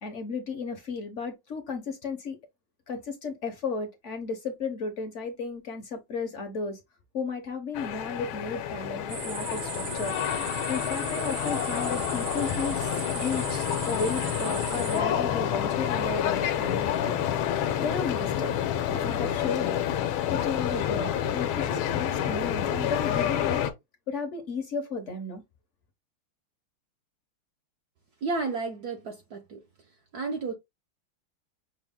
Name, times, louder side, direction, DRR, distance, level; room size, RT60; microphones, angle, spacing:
voice 1, 0.0-2.4 2.9-6.8 7.1-17.2 17.8-18.5 18.9-19.8 20.3-23.6 24.1-25.4, left 4 dB, 60° left, 0.8 m, -34 dB
sound 1, 7.8-23.7, left 10 dB, 80° left, 1.5 m, -28 dB
sound 2, 9.1-15.0, right 6 dB, 90° right, 0.6 m, -38 dB
voice 2, 28.2-29.6 30.1-30.5, right 4 dB, 65° right, 1.0 m, -32 dB
6.2 x 2.2 x 3.5 m
omnidirectional pair, 2.3 m